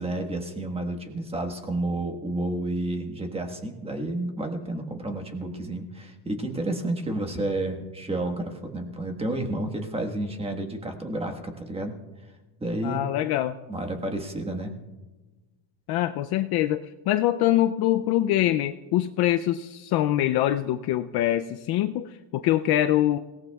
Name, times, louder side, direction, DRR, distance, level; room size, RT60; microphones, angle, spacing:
voice 1, 0.0-12.0 12.6-13.1 13.7-14.8, right 1 dB, 10° right, 4 dB, 1.4 m, -30 dB
voice 2, 12.8-13.5 15.9-23.2, left 13 dB, 50° left, 9 dB, 0.5 m, -24 dB
29.0 x 18.0 x 2.3 m, 1.2 s
cardioid pair, 140°, 50 cm